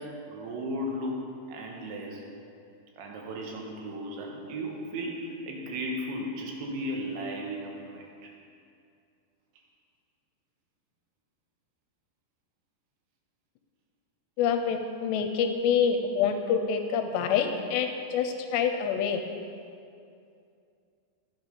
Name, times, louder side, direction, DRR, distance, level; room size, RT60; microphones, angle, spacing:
voice 1, 0.0-2.2 3.0-8.3, equal, 85° right, -1 dB, 3.6 m, -35 dB
voice 2, 14.4-19.2, left 7 dB, 80° left, 6 dB, 2.6 m, -26 dB
12.0 x 8.1 x 5.3 m, 2.5 s
omnidirectional pair, 5.1 m